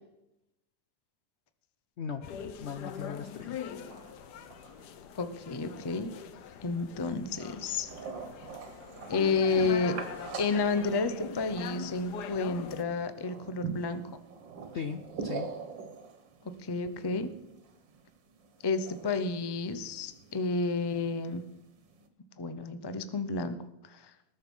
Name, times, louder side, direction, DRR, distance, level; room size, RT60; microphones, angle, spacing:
voice 1, 2.0-3.6 14.7-15.5, left 6 dB, 85° left, 10 dB, 0.6 m, -38 dB
sound 1, 2.2-12.8, left 8 dB, 70° left, 1.3 m, -42 dB
sound 2, 3.7-22.1, right 5 dB, 85° right, 2.0 m, -45 dB
voice 2, 5.2-6.1 6.6-7.9 9.1-9.9 10.4-14.0 16.6-17.3 18.6-21.5 22.4-23.6 23.9-24.1, left 4 dB, 35° left, 11 dB, 0.3 m, -31 dB
20.0 x 6.8 x 5.4 m, 0.87 s
omnidirectional pair, 1.9 m